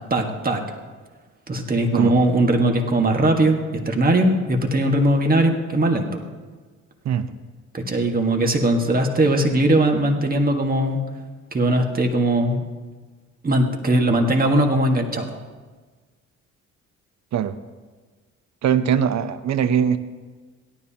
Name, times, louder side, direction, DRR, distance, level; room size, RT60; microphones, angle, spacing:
voice 1, 0.1-0.6 1.5-6.2 7.7-11.0 11.5-12.6 13.4-15.3, right 1 dB, 30° right, 3 dB, 1.6 m, -20 dB
voice 2, 18.6-20.0, right 8 dB, 65° right, 12 dB, 0.8 m, -21 dB
17.0 x 12.5 x 2.9 m, 1.4 s
cardioid pair, 90°, 30 cm